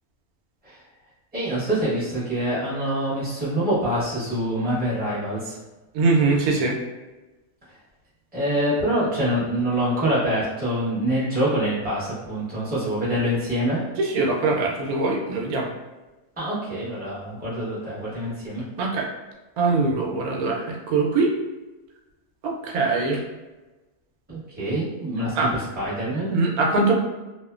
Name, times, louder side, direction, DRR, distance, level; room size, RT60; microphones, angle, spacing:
voice 1, 1.3-5.6 8.3-13.8 16.4-18.6 24.3-26.3, right 1 dB, 10° right, -9 dB, 0.8 m, -25 dB
voice 2, 5.9-6.8 14.0-15.7 18.8-19.1 19.6-21.3 22.4-23.2 25.3-25.5 26.3-27.0, right 3 dB, 80° right, -1 dB, 1.0 m, -22 dB
2.9 x 2.1 x 2.3 m, 1.1 s
omnidirectional pair, 1.5 m